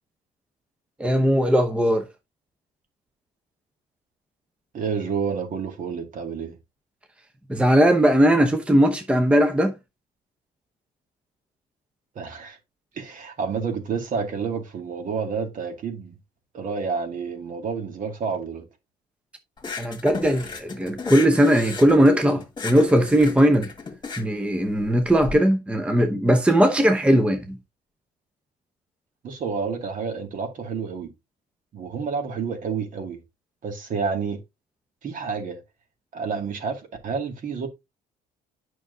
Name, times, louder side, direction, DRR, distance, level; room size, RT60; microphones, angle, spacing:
voice 1, 1.0-2.0 7.5-9.8 19.8-23.7 24.2-27.6, equal, 5° right, 0.8 m, -19 dB
voice 2, 4.7-6.6 12.2-12.6 12.9-16.2 16.5-18.7 29.2-31.1 31.7-33.2 33.6-34.4 35.0-35.6 36.1-37.7, right 5 dB, 50° right, 2.3 m, -29 dB
sound 1, 19.6-25.3, left 5 dB, 25° left, 1.9 m, -35 dB
8.9 x 6.1 x 2.7 m
cardioid pair, 110°, 17 cm